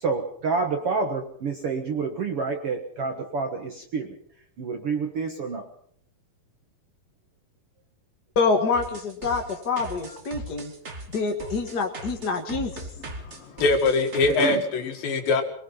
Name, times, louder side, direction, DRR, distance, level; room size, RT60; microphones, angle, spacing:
voice 1, 0.0-4.2 4.6-5.7 14.4-14.6, right 4 dB, 55° right, 5 dB, 1.8 m, -28 dB
voice 2, 8.3-10.7 11.1-12.8, left 4 dB, 40° left, 2 dB, 1.4 m, -26 dB
glitch hop drums, 8.7-14.6, right 1 dB, 30° right, 1.3 m, -39 dB
voice 3, 13.2-15.4, left 3 dB, 70° left, 5 dB, 3.7 m, -23 dB
23.0 x 20.0 x 5.7 m, 0.63 s
omnidirectional pair, 4.3 m